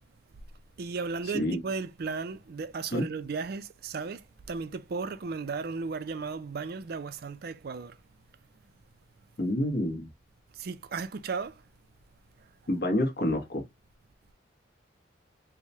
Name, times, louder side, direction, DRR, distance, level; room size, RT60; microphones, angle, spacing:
voice 1, 0.8-8.0 10.5-11.6, right 4 dB, 55° right, 0.4 m, -35 dB
voice 2, 9.4-10.1 12.7-13.6, left 1 dB, 55° left, 1.1 m, -28 dB
4.7 x 2.2 x 2.7 m
head